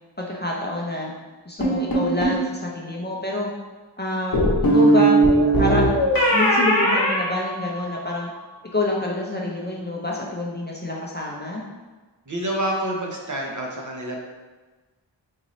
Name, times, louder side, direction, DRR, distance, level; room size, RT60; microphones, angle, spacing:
voice 1, 0.2-1.1 1.5-3.5 4.0-4.4 4.7-5.2 5.6-8.3 8.7-11.6, left 1 dB, 25° left, -3 dB, 0.5 m, -27 dB
sound 1, 1.6-2.4 4.3-8.1, right 1 dB, 50° left, 0.9 m, -19 dB
voice 2, 12.3-14.2, right 1 dB, 40° right, -1 dB, 0.7 m, -27 dB
3.9 x 2.6 x 3.0 m, 1.3 s
wide cardioid pair, 55°, 45 cm